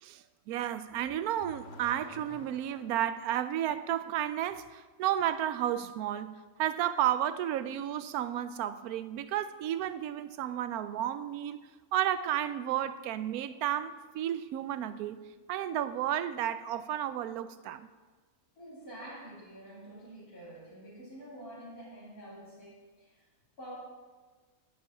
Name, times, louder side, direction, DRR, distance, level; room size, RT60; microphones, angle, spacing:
voice 1, 0.0-15.2 15.5-17.9, right 11 dB, 85° right, 13 dB, 1.1 m, -32 dB
Car / Accelerating revving vroom, 0.8-3.1, left 2 dB, 50° left, 1.2 m, -51 dB
voice 2, 18.6-23.2 23.6-23.7, right 1 dB, 80° left, -12 dB, 3.8 m, -47 dB
10.5 x 9.9 x 3.9 m, 1.3 s
omnidirectional pair, 1.5 m